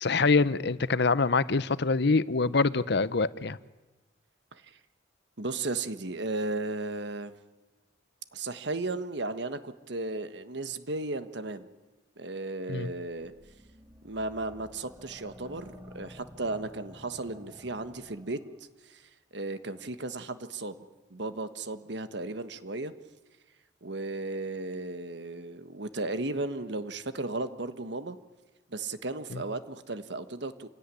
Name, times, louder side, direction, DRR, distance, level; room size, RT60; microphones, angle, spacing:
voice 1, 0.0-3.6 12.7-12.9 29.3-29.4, left 4 dB, 60° left, 0.8 m, -25 dB
voice 2, 5.4-7.3 8.3-11.7 12.2-13.3 14.0-18.4 18.9-19.0 19.3-20.8 21.1-22.9 23.8-28.2 28.7-30.7, right 2 dB, 65° right, 1.4 m, -35 dB
sound 1, 13.0-18.6, equal, 15° right, 2.4 m, -51 dB
27.5 x 17.0 x 10.0 m
head